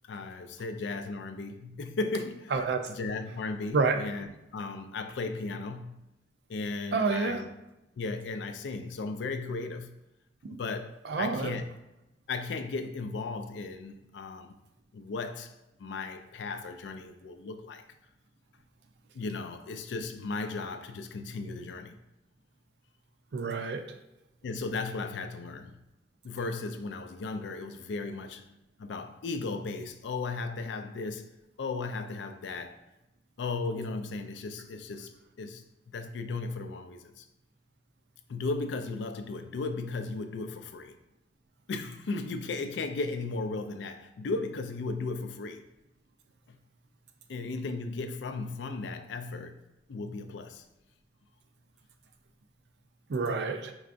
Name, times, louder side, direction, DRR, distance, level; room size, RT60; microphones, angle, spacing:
voice 1, 0.1-6.0 6.5-7.5 8.0-10.0 10.5-11.7 12.3-14.6 14.9-15.5 15.8-17.8 19.1-22.0 24.4-25.8 26.2-28.5 28.8-32.8 33.4-37.3 38.3-40.9 41.7-45.6 46.5-46.6 47.3-49.6 49.9-50.7, left 3 dB, 90° left, 0.4 m, -36 dB
voice 2, 2.5-2.8 3.7-4.0 6.9-7.4 10.4-10.6 11.1-11.5 23.3-23.8 53.1-53.7, right 4 dB, 70° right, 0.4 m, -28 dB
4.7 x 3.3 x 2.5 m
head